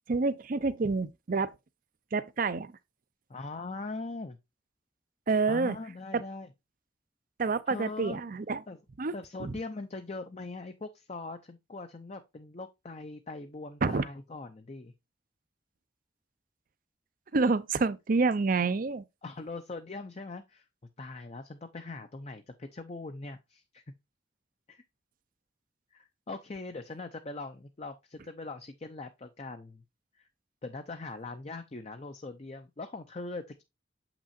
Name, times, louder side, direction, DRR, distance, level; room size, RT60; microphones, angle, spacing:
voice 1, 0.1-1.5 2.1-2.7 5.3-5.8 7.4-8.6 9.0-9.1 9.4-9.5 13.8-14.0 17.3-19.0, right 4 dB, 50° right, 0.5 m, -28 dB
voice 2, 3.3-4.4 5.5-6.5 7.7-8.2 8.7-8.8 9.1-14.9 19.2-20.6 21.0-23.8 24.7-24.8 25.9-29.8 30.2-30.3 30.6-33.6, left 3 dB, 40° left, 0.6 m, -41 dB
7.4 x 6.0 x 2.6 m
head